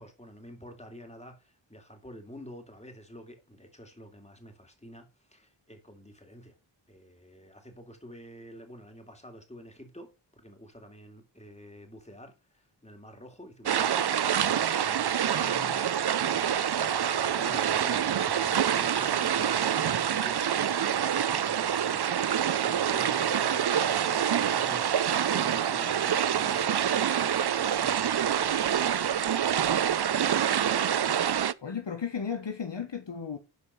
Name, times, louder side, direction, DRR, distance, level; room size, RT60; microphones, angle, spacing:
voice 1, 0.0-6.5 6.9-14.1 14.4-29.6 30.2-30.9, equal, 15° left, 3.1 m, -49 dB
sound 1, 13.7-31.5, right 9 dB, 55° right, 0.6 m, -26 dB
voice 2, 15.4-15.7 31.6-33.4, left 6 dB, 60° left, 1.3 m, -35 dB
sound 2, 16.3-23.3, right 3 dB, 80° right, 3.3 m, -46 dB
12.0 x 5.1 x 5.6 m
wide cardioid pair, 65°, 48 cm